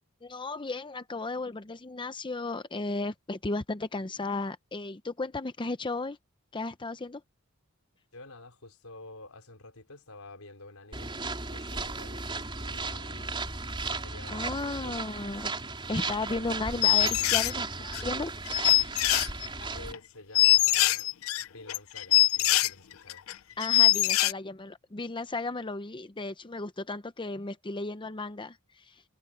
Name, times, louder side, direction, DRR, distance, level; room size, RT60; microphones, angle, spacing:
voice 1, 0.2-6.2 6.5-7.2 14.3-15.5 15.9-18.3 23.6-29.0, left 3 dB, 25° left, 0.7 m, -35 dB
voice 2, 8.1-11.1 11.4-12.3 12.5-13.5 13.9-15.1 19.7-21.1 21.5-23.3, left 2 dB, 90° left, 4.4 m, -49 dB
sound 1, 10.9-19.9, right 3 dB, 25° right, 3.9 m, -35 dB
sound 2, 16.8-17.5 17.9-18.0 18.5-19.6 19.9-20.0 20.3-22.7 23.1-23.3 23.6-24.3, left 14 dB, 70° left, 0.5 m, -23 dB
head